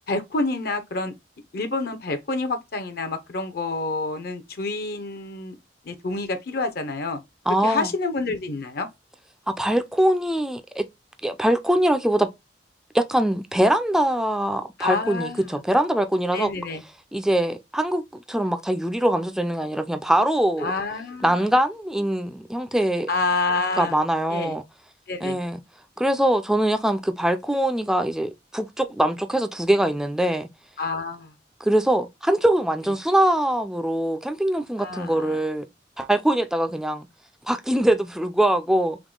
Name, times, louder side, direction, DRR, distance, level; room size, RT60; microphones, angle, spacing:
voice 1, 0.1-1.1 1.5-5.5 5.9-7.2 7.6-8.9 14.8-15.6 16.3-16.8 20.6-21.5 23.1-24.0 24.3-24.6 25.1-25.4 30.8-31.3 34.8-35.4, left 3 dB, 60° left, 0.7 m, -28 dB
voice 2, 7.5-7.9 9.5-10.9 11.2-12.3 12.9-16.5 17.1-18.0 18.3-20.7 21.2-23.1 23.8-24.6 25.2-25.6 26.0-30.5 31.6-35.7 36.0-37.1 37.5-39.0, right 1 dB, 5° right, 0.3 m, -22 dB
3.6 x 3.1 x 3.7 m
head